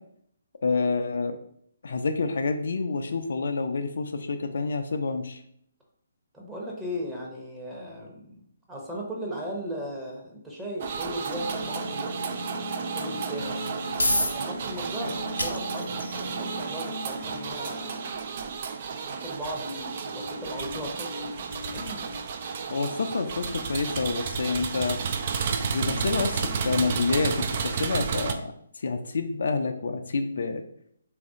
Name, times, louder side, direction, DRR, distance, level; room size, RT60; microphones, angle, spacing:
voice 1, 0.6-1.4 1.8-5.4 22.7-25.0 25.6-27.3 27.6-28.5 28.8-30.6, left 4 dB, 60° left, 6 dB, 0.4 m, -28 dB
voice 2, 6.3-12.4 12.9-13.6 14.3-18.0 19.1-21.1 21.7-22.1, equal, 10° right, -3 dB, 0.9 m, -37 dB
sound 1, 10.8-28.3, right 6 dB, 40° right, 0.3 m, -32 dB
sound 2, 11.3-27.1, equal, 75° right, 0.7 m, -40 dB
sound 3, 14.0-28.4, left 1 dB, 85° left, 0.8 m, -37 dB
3.4 x 2.5 x 3.5 m, 0.68 s
figure-of-eight pair, 135°, 0 cm